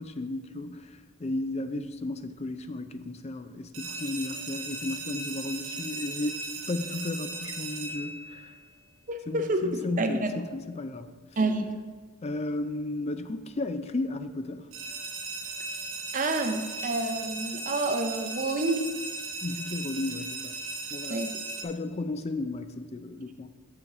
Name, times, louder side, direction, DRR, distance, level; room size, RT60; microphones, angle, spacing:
voice 1, 0.0-8.5 9.3-11.2 12.2-14.7 19.4-20.6 20.9-21.3 21.6-23.5, left 2 dB, 30° left, 10 dB, 0.4 m, -34 dB
sound 1, 3.7-8.6 14.7-21.6, right 3 dB, 60° right, 1.0 m, -37 dB
voice 2, 9.1-9.7 10.0-10.3 11.4-11.7 16.1-18.8 21.1-21.4, right 2 dB, 35° right, 7 dB, 0.6 m, -28 dB
7.0 x 6.8 x 4.8 m, 1.5 s
head